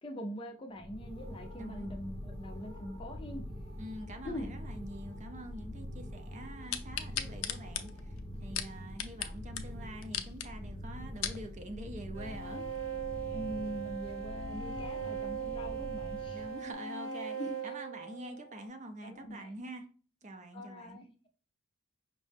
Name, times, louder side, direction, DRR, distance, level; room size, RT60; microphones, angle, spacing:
voice 1, 0.0-3.4 4.2-4.5 13.3-16.6 17.3-17.7 19.0-19.6 20.5-21.3, equal, 25° left, 0.5 m, -43 dB
sound 1, 0.7-16.7, equal, 50° right, 0.9 m, -44 dB
voice 2, 3.8-8.1 8.4-12.7 16.3-17.4 17.6-19.9 20.2-21.0, right 1 dB, 35° right, 0.5 m, -46 dB
sound 2, 6.7-9.3 9.6-9.7 10.0-10.5 10.9-11.4 12.0-12.1, left 10 dB, 80° left, 0.4 m, -36 dB
sound 3, 12.1-18.6, right 7 dB, 80° right, 0.9 m, -39 dB
5.4 x 2.0 x 3.3 m
head